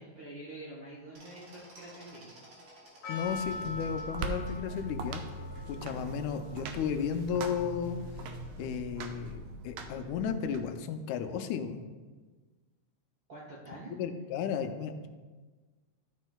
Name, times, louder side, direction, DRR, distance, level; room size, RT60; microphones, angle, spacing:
voice 1, 0.0-2.4 13.3-14.0, right 1 dB, 65° right, -6 dB, 1.1 m, -46 dB
sound 1, 1.1-4.5, right 1 dB, 50° right, 2.3 m, -54 dB
Percussion, 3.0-8.3, left 3 dB, 50° left, 1.4 m, -44 dB
voice 2, 3.1-5.2 5.7-8.3 8.6-11.9 14.0-15.1, left 7 dB, 85° left, 8 dB, 1.9 m, -34 dB
sound 2, 3.1-10.6, right 3 dB, 90° right, 1.3 m, -41 dB
12.0 x 6.3 x 2.2 m, 1.3 s
omnidirectional pair, 3.4 m